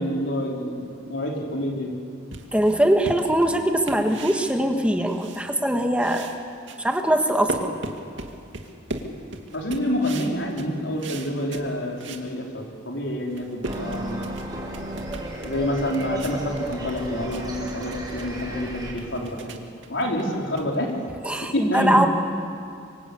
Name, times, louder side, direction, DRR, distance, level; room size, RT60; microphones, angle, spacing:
voice 1, 0.0-2.0 9.5-14.4 15.4-19.6 19.9-20.9 21.3-22.1, equal, 80° left, 0 dB, 4.6 m, -28 dB
sound 1, 2.3-5.7 6.0-12.3 12.7-12.8 13.2-21.3, right 2 dB, 75° right, 2.4 m, -38 dB
voice 2, 2.5-6.3 6.8-7.7 21.2-22.1, right 1 dB, 5° right, 4 dB, 1.5 m, -22 dB
sound 2, 13.6-18.9, right 1 dB, 20° right, 6.0 m, -33 dB
27.0 x 24.5 x 8.6 m, 2.4 s
head